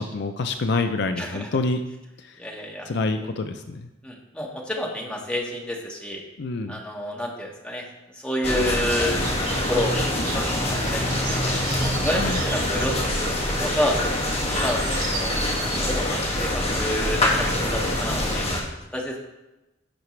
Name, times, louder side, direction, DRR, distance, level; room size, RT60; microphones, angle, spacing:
voice 1, 0.0-1.8 2.2-2.3 2.9-3.8 6.4-6.8 12.2-12.4, left 3 dB, 60° left, 7 dB, 0.5 m, -26 dB
voice 2, 1.2-1.5 2.4-2.9 3.2-3.3 4.0-6.2 6.7-7.8 8.1-9.2 9.7-11.5 11.8-14.0 14.5-15.3 15.6-18.4 18.9-19.2, equal, 5° left, -2 dB, 1.6 m, -29 dB
sound 1, 8.4-18.6, left 1 dB, 30° left, 1.9 m, -25 dB
sound 2, 9.2-18.2, right 2 dB, 45° right, 2.6 m, -32 dB
16.5 x 5.9 x 3.2 m, 0.99 s
head